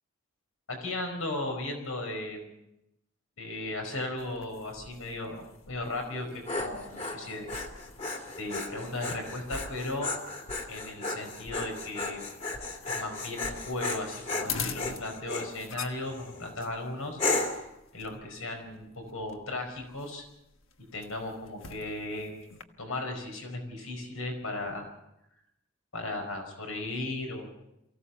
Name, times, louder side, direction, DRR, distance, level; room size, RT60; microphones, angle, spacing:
voice 1, 0.7-2.6 3.4-7.5 8.4-10.1 10.7-12.2 12.9-17.2 17.9-20.3 20.8-22.3 22.8-24.9 25.9-27.5, left 2 dB, 85° left, 4 dB, 4.9 m, -36 dB
sound 1, 4.2-22.6, left 5 dB, 70° left, 1.4 m, -45 dB
Dog, 6.1-15.5 16.1-16.5 17.2-17.7, left 3 dB, 30° left, 2.4 m, -34 dB
24.0 x 16.0 x 7.1 m, 0.85 s
head